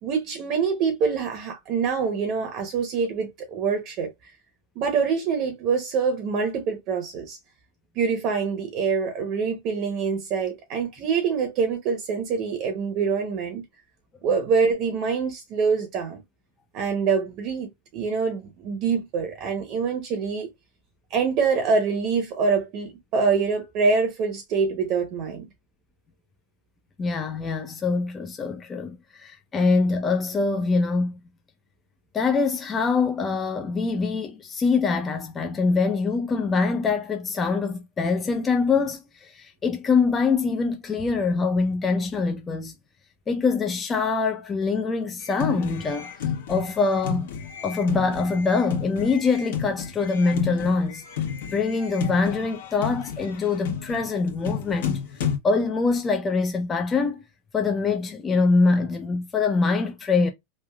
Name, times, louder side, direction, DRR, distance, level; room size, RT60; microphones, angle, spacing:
voice 1, 0.0-4.3 4.8-7.4 8.0-13.6 14.2-16.2 16.7-20.5 21.1-25.5, right 5 dB, 50° right, 0.8 m, -25 dB
voice 2, 27.0-31.1 32.1-42.7 43.3-46.1 46.5-47.3 47.6-51.0 51.5-55.0 55.4-57.2 57.5-60.3, left 4 dB, 25° left, 0.5 m, -24 dB
sound 1, 45.2-55.4, left 8 dB, 75° left, 1.1 m, -32 dB
3.3 x 2.4 x 2.3 m
hypercardioid pair, 110°, 0 cm